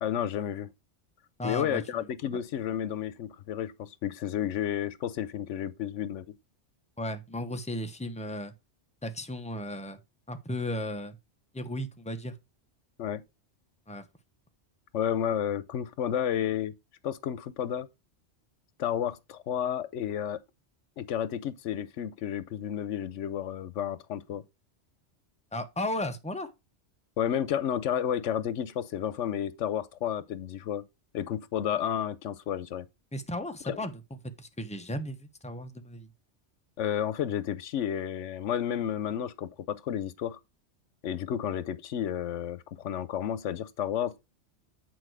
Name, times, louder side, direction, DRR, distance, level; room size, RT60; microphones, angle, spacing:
voice 1, 0.0-0.7 1.4-6.3 13.0-13.2 14.9-16.7 17.0-17.9 18.8-20.4 21.0-24.4 27.2-30.8 31.1-32.9 33.6-33.8 36.8-40.4 41.0-44.2, left 9 dB, 90° left, 1.0 m, -31 dB
voice 2, 1.4-1.8 7.0-8.5 9.0-10.0 10.3-11.2 11.5-12.3 13.9-14.0 25.5-26.5 33.1-33.9 34.4-36.1, left 1 dB, 5° left, 1.0 m, -35 dB
8.8 x 4.6 x 4.7 m
omnidirectional pair, 1.2 m